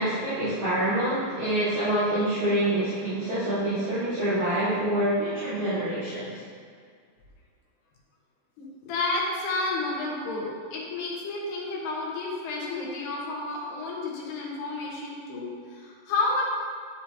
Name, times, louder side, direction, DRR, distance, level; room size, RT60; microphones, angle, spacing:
voice 1, 0.0-6.4, right 1 dB, 50° right, -14 dB, 3.0 m, -26 dB
voice 2, 8.6-16.4, left 3 dB, 80° left, -4 dB, 3.4 m, -31 dB
10.5 x 7.1 x 2.9 m, 2.1 s
omnidirectional pair, 4.8 m